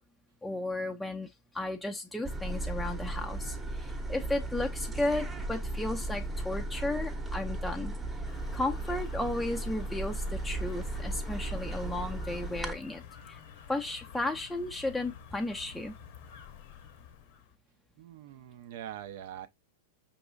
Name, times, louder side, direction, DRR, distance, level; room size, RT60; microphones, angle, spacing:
voice 1, 0.4-8.0 8.5-13.4 13.7-15.9, left 2 dB, 5° left, 0.5 m, -34 dB
sound 1, 2.2-12.7, right 2 dB, 15° right, 0.9 m, -36 dB
sound 2, 8.3-17.6, left 8 dB, 60° left, 0.8 m, -50 dB
voice 2, 18.0-19.5, right 11 dB, 60° right, 0.6 m, -43 dB
5.2 x 3.0 x 2.3 m
hypercardioid pair, 105°, 0 cm